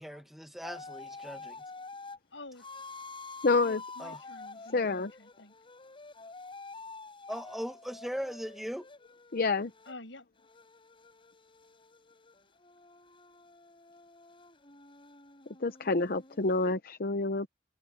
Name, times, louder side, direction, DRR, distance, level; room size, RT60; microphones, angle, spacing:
voice 1, 0.0-1.6 4.0-4.2 7.3-8.8, equal, ahead, 1.5 m, -39 dB
sound 1, 0.6-2.2 2.6-9.9 10.4-16.7, left 3 dB, 30° left, 5.7 m, -48 dB
voice 2, 2.3-2.7 3.6-5.5 9.9-10.3, left 2 dB, 80° left, 7.6 m, -49 dB
voice 3, 3.4-3.8 4.7-5.1 9.3-9.7 15.6-17.5, left 3 dB, 55° left, 0.7 m, -28 dB
head